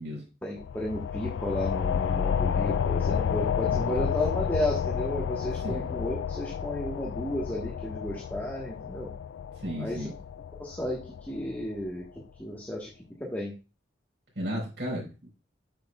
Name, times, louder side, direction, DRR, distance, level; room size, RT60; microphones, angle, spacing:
voice 1, 0.4-9.1 9.8-10.1 10.6-12.0 12.4-12.9 13.2-13.5, left 1 dB, 10° left, -3 dB, 1.4 m, -33 dB
sound 1, 0.6-11.8, left 7 dB, 80° left, 0.3 m, -30 dB
voice 2, 3.7-4.1 5.6-6.0 9.5-10.1 14.3-15.3, equal, 70° right, -3 dB, 4.6 m, -35 dB
9.0 x 6.8 x 2.4 m, 0.30 s
head